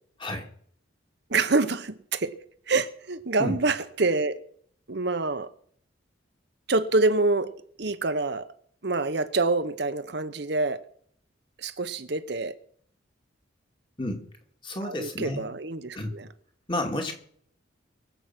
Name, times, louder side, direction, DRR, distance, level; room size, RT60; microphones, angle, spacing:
voice 1, 1.3-2.4 2.7-4.4 4.9-5.5 6.7-7.5 7.8-8.5 8.8-10.8 11.6-12.5 14.8-16.3, right 3 dB, 55° right, 0.9 m, -26 dB
voice 2, 14.6-15.5 15.9-16.2 16.7-17.2, left 1 dB, 25° left, 2.4 m, -31 dB
23.0 x 8.1 x 6.0 m
head